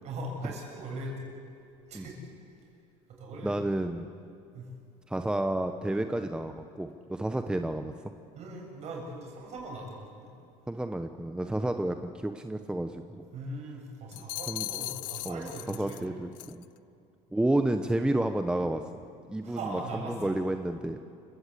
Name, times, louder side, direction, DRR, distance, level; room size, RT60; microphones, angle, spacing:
voice 1, 0.0-1.3 1.9-2.2 3.2-3.7 4.5-4.7 8.3-10.3 11.4-11.6 13.3-16.2 19.4-20.3, right 1 dB, 50° right, 0 dB, 7.6 m, -40 dB
voice 2, 3.4-4.1 5.1-7.9 10.7-13.2 14.5-14.6 15.2-15.4 15.8-16.6 17.3-18.8 19.3-21.0, right 1 dB, 5° right, 7 dB, 0.9 m, -30 dB
sound 1, 14.1-16.0 16.4-16.6, left 19 dB, 70° left, 0.5 m, -38 dB
29.0 x 16.0 x 8.4 m, 2.6 s
cardioid pair, 120°, 15 cm